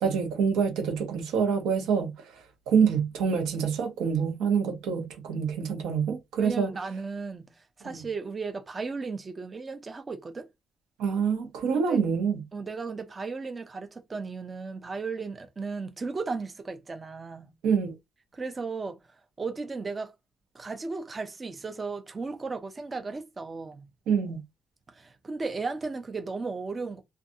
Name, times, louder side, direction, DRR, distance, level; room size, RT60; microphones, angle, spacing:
voice 1, 0.0-2.1 2.7-6.7 7.8-8.0 11.0-12.4 17.6-17.9 24.1-24.4, right 6 dB, 90° right, 0.7 m, -26 dB
voice 2, 6.4-10.5 11.7-12.0 12.5-17.5 18.3-19.0 19.4-20.1 20.5-23.9 24.9-27.0, right 4 dB, 30° right, 0.5 m, -35 dB
2.5 x 2.3 x 2.6 m
cardioid pair, 90°, 0 cm